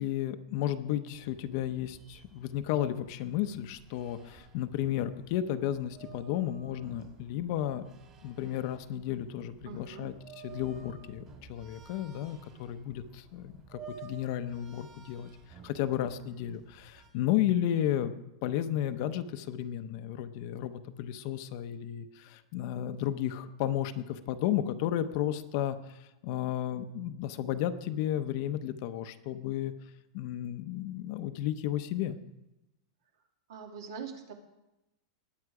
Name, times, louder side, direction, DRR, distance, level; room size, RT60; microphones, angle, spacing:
voice 1, 0.0-7.8 8.2-10.1 10.4-18.1 18.4-29.7 30.1-32.2, left 11 dB, 45° left, 10 dB, 0.8 m, -33 dB
sound 1, 1.1-17.1, right 6 dB, 25° right, 2.4 m, -53 dB
voice 2, 9.6-10.1 33.5-34.3, right 6 dB, 70° right, 3 dB, 2.4 m, -43 dB
20.0 x 8.9 x 4.9 m, 0.94 s
supercardioid pair, 170°, 2 cm